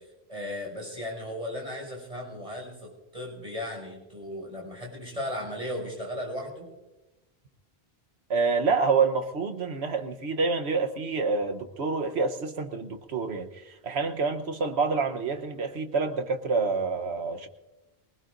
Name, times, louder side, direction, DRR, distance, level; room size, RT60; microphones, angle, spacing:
voice 1, 0.3-6.7, left 1 dB, 35° right, -1 dB, 6.3 m, -36 dB
voice 2, 8.3-13.5 13.8-17.5, right 4 dB, 90° right, 6 dB, 1.3 m, -27 dB
23.5 x 19.5 x 2.6 m, 1.0 s
omnidirectional pair, 1.1 m